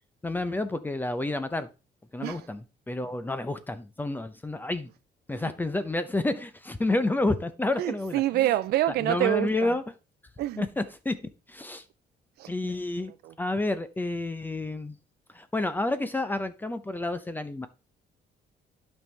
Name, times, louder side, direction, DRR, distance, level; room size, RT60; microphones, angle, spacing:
voice 1, 0.2-1.7 2.1-2.6 2.9-4.9 5.3-8.2 9.0-9.8 10.6-11.2 11.5-11.8 12.5-13.1 13.4-15.0 15.3-17.7, left 2 dB, 10° left, 0.6 m, -29 dB
voice 2, 7.8-9.8 10.4-10.6 12.4-12.5 13.0-13.3, right 14 dB, 70° right, 0.4 m, -27 dB
12.0 x 5.4 x 3.2 m
cardioid pair, 155°, 17 cm